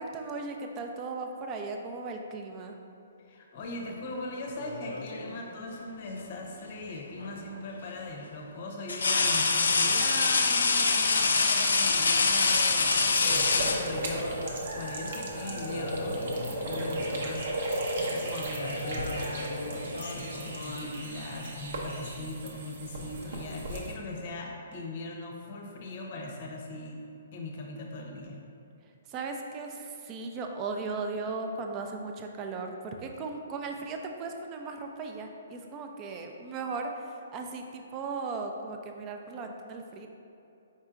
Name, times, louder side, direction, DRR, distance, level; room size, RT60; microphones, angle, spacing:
voice 1, 0.0-2.8 29.1-40.1, right 3 dB, 25° right, 3 dB, 0.4 m, -37 dB
voice 2, 3.3-14.4 14.7-27.0 27.3-28.4, left 2 dB, 50° left, 0 dB, 0.7 m, -40 dB
sound 1, 4.6-5.4 7.2-7.4 8.9-14.4 15.5-15.8 16.1-16.9 17.2-17.5 18.4-21.0, left 4 dB, 75° left, 0.3 m, -27 dB
sound 2, 11.6-23.9, right 1 dB, 65° right, 0.7 m, -35 dB
4.4 x 4.2 x 2.5 m, 2.7 s
hypercardioid pair, 135°, 0 cm